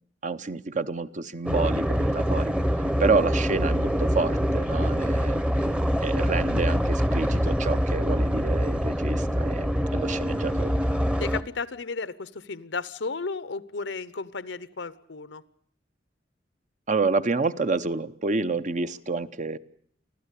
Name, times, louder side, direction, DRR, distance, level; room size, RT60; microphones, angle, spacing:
voice 1, 0.2-2.5 3.0-5.4 6.0-10.7 16.9-19.6, right 4 dB, 45° right, 12 dB, 0.8 m, -28 dB
sound 1, 1.5-11.4, equal, 5° right, 0.9 m, -25 dB
voice 2, 11.2-15.4, left 4 dB, 85° left, 16 dB, 0.9 m, -34 dB
25.0 x 15.5 x 8.3 m, 0.63 s
head